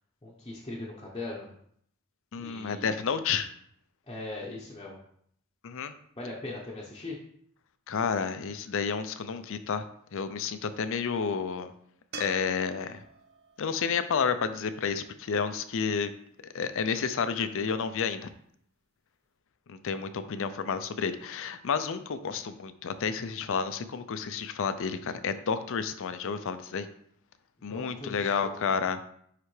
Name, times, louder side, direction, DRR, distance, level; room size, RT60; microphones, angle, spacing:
voice 1, 0.2-1.5 2.4-3.0 4.0-5.0 6.2-7.2 27.7-28.7, left 2 dB, 20° left, -5 dB, 0.8 m, -40 dB
voice 2, 2.3-3.5 5.6-5.9 7.9-9.8 10.1-11.7 12.1-13.0 13.6-16.1 16.5-18.3 19.7-26.9 27.6-29.1, left 6 dB, 65° left, 11 dB, 0.5 m, -30 dB
sound 1, 12.1-15.4 18.6-18.7, right 5 dB, 45° right, 0.6 m, -48 dB
9.6 x 3.3 x 3.2 m, 0.68 s
head